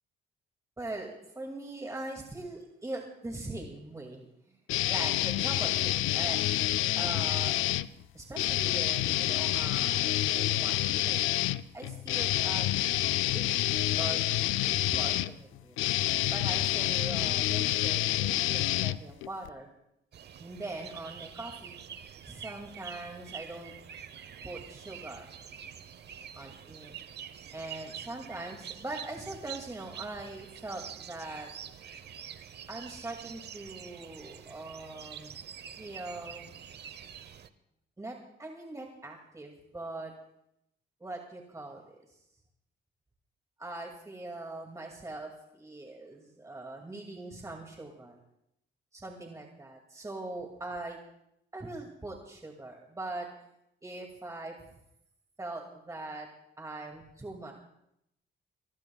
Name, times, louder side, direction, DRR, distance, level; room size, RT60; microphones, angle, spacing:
voice 1, 0.8-4.6 4.9-6.4 6.9-7.5 8.1-10.8 11.0-11.3 11.7-12.7 13.3-13.5 14.0-15.8 16.3-19.7 20.4-21.8 22.3-23.7 24.4-25.3 26.3-26.9 27.5-31.5 32.7-35.4 35.8-36.5 38.0-40.1 41.0-42.2 43.6-48.2 48.9-51.0 51.5-53.3 53.8-54.6 55.4-56.3 56.6-57.5, right 2 dB, 15° right, 1 dB, 2.3 m, -41 dB
sound 1, 4.7-7.9 8.3-19.5, left 14 dB, 90° left, 0.5 m, -28 dB
sound 2, 20.1-37.5, right 8 dB, 55° right, 0.9 m, -46 dB
26.5 x 19.0 x 2.3 m, 0.79 s
cardioid pair, 90°, 20 cm